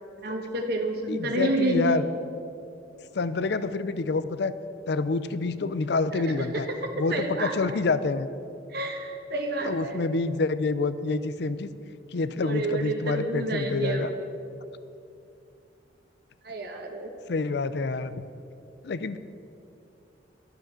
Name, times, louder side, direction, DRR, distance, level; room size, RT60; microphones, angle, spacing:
voice 1, 0.2-1.9 6.1-7.8 8.7-10.1 12.4-14.1 16.4-17.1, right 2 dB, 60° right, 3 dB, 1.2 m, -29 dB
voice 2, 1.1-2.0 3.1-4.5 4.9-6.7 7.0-8.3 9.6-11.7 12.1-14.1 17.3-18.2 18.8-19.2, left 3 dB, 65° left, 14 dB, 0.5 m, -27 dB
12.0 x 7.4 x 7.5 m, 2.6 s
head